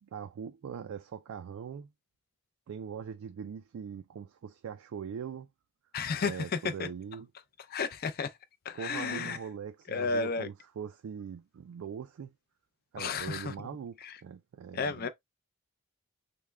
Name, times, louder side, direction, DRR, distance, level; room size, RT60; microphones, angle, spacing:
voice 1, 0.0-1.9 2.7-5.5 6.2-7.3 8.7-12.3 12.9-15.1, right 7 dB, 65° right, 0.3 m, -41 dB
voice 2, 5.9-6.9 7.7-8.3 8.7-9.4 9.9-10.5 13.0-13.5 14.0-14.2 14.7-15.1, left 5 dB, 45° left, 0.4 m, -32 dB
3.5 x 2.1 x 3.2 m
head